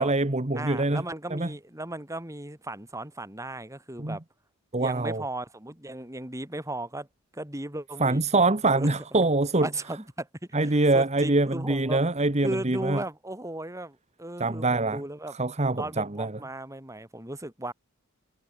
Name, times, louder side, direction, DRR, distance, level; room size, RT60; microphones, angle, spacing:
voice 1, 0.0-1.0 1.3-1.5 4.0-4.2 4.7-5.2 8.0-9.7 10.5-13.0 14.4-15.0 15.3-16.3, right 2 dB, 30° right, 1.4 m, -24 dB
voice 2, 0.5-4.2 4.8-7.1 7.3-8.2 8.7-8.9 9.6-10.3 10.6-12.0 12.4-15.3 15.8-17.7, right 1 dB, 15° right, 3.2 m, -36 dB
head